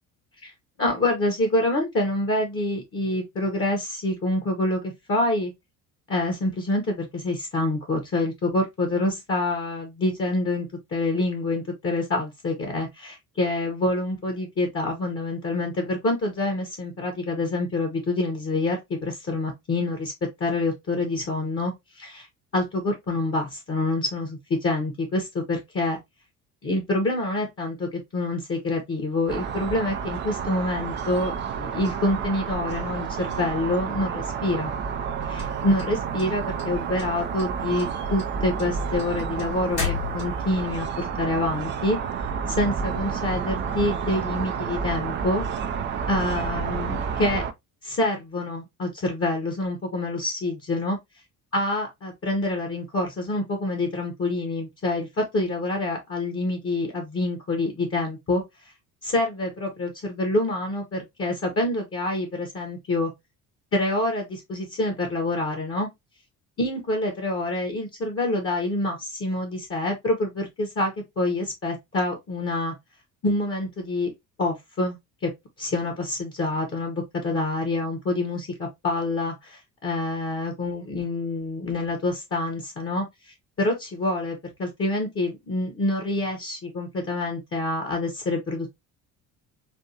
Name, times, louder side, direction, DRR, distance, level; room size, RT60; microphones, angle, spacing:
voice 1, 0.8-5.5 6.1-20.1 20.4-22.3 22.5-26.0 26.6-34.7 35.3-42.0 42.5-45.5 46.1-47.5 47.8-51.0 51.5-58.4 59.0-63.1 63.7-65.9 66.6-72.7 73.2-74.1 74.4-75.3 75.6-88.7, left 2 dB, 25° left, 1.0 m, -27 dB
sound 1, 29.3-47.5, right 6 dB, 25° right, 0.4 m, -30 dB
sound 2, 35.4-36.6 37.0-37.5 37.8-40.6, left 5 dB, 75° left, 2.4 m, -32 dB
4.4 x 2.6 x 2.7 m
figure-of-eight pair, 50°, 48 cm